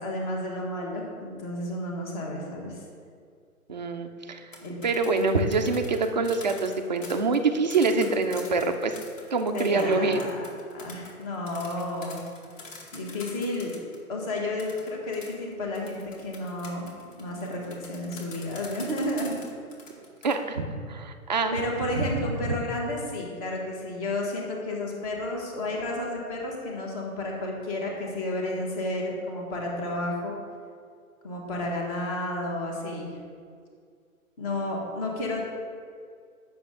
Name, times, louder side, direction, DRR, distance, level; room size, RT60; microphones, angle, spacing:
voice 1, 0.0-2.8 4.6-4.8 9.5-10.5 10.7-12.2 12.9-13.7 14.1-16.9 17.2-19.4 21.5-30.3 31.2-33.2 34.4-35.4, left 1 dB, 25° left, -1 dB, 1.5 m, -31 dB
voice 2, 3.7-4.5 4.8-9.0 9.3-10.3 20.2-21.6 22.0-22.1 22.4-22.6, right 3 dB, 35° right, 5 dB, 0.4 m, -25 dB
sound 1, 4.4-14.0 14.6-20.3, left 3 dB, 60° left, 2.1 m, -45 dB
8.6 x 6.7 x 3.6 m, 2.2 s
hypercardioid pair, 140°, 44 cm